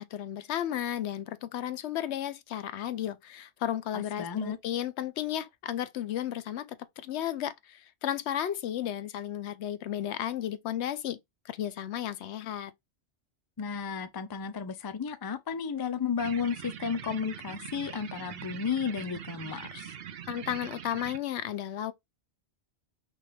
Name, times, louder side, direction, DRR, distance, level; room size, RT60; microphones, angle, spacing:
voice 1, 0.0-11.2 11.4-12.7 20.3-21.9, left 11 dB, 80° left, 0.9 m, -34 dB
voice 2, 3.9-4.6 13.6-20.0, left 6 dB, 35° left, 0.3 m, -33 dB
sound 1, 16.2-21.2, right 9 dB, 65° right, 0.8 m, -42 dB
5.7 x 2.4 x 3.3 m
omnidirectional pair, 1.1 m